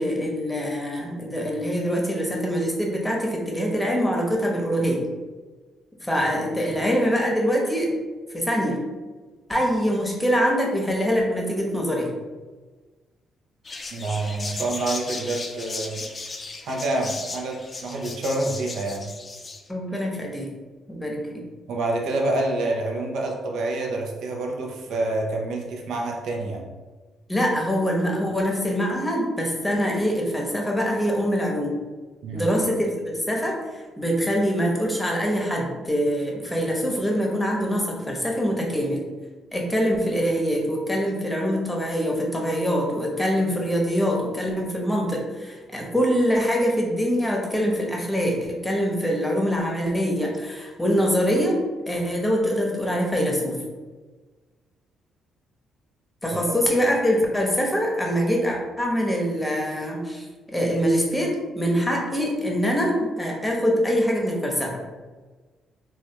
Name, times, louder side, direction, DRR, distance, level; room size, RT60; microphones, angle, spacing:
voice 1, 0.0-5.0 6.0-7.9 8.3-8.8 9.5-12.1 19.7-20.5 20.9-21.4 27.3-31.7 32.3-39.0 39.5-51.6 51.9-53.5 56.2-64.9, equal, 10° left, -1 dB, 0.9 m, -24 dB
sound 1, 13.6-19.6, left 3 dB, 35° left, 0.4 m, -36 dB
voice 2, 13.9-16.0 16.7-19.1 21.7-26.6 32.2-32.5, right 2 dB, 75° right, 0 dB, 0.6 m, -27 dB
3.1 x 2.4 x 2.8 m, 1.3 s
supercardioid pair, 65°, 0 cm